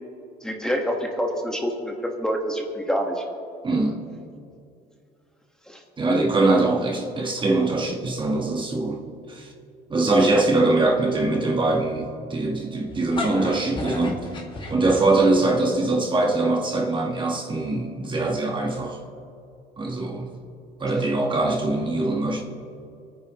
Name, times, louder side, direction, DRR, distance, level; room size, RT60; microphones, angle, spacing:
voice 1, 0.4-3.2 5.7-5.8 10.3-10.4, equal, 5° left, 1 dB, 1.6 m, -27 dB
voice 2, 3.6-4.0 6.0-9.0 9.3-9.5 9.9-14.3 14.7-19.0 19.8-20.3 20.8-22.4, right 2 dB, 30° right, 1 dB, 1.4 m, -22 dB
sound 1, 12.9-15.5, left 2 dB, 30° left, 2.0 m, -32 dB
25.0 x 9.5 x 3.1 m, 2.5 s
cardioid pair, 110°, 17 cm